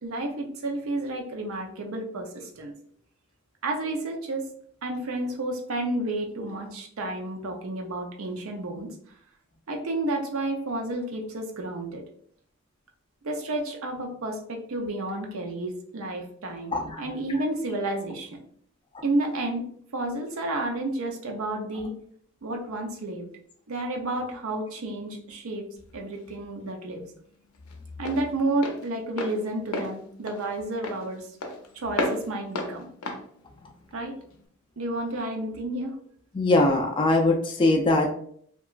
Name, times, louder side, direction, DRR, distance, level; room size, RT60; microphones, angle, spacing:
voice 1, 0.0-2.7 3.6-4.5 4.8-8.9 9.7-12.0 13.2-18.4 19.0-19.7 19.9-21.9 22.4-23.3 23.7-25.6 25.9-27.1 28.0-31.3 31.7-32.9 33.9-34.2 34.8-36.0, right 2 dB, 70° right, 2 dB, 0.5 m, -31 dB
voice 2, 16.7-17.0 36.3-38.1, left 2 dB, 20° left, 1 dB, 0.3 m, -21 dB
Walk footsteps, 25.8-34.5, left 2 dB, 80° left, 0.5 m, -35 dB
2.9 x 2.3 x 2.3 m, 0.63 s
head